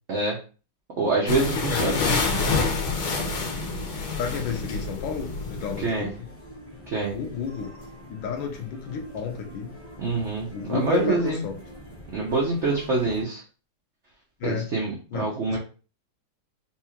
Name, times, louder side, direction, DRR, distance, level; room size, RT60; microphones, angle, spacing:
voice 1, 1.0-2.0 5.8-6.1 6.9-7.2 10.0-11.4 12.1-13.4 14.4-15.6, right 3 dB, 85° right, -1 dB, 0.6 m, -25 dB
sound 1, 1.3-5.9, left 4 dB, 85° left, 1.8 m, -27 dB
voice 2, 1.5-2.0 4.2-6.3 7.1-7.7 8.1-9.7 10.5-11.6 14.4-14.7 15.1-15.6, left 6 dB, 70° left, 4 dB, 1.4 m, -31 dB
sound 2, 2.1-13.2, equal, 20° left, 0.4 m, -44 dB
4.3 x 2.4 x 2.8 m, 0.35 s
omnidirectional pair, 2.2 m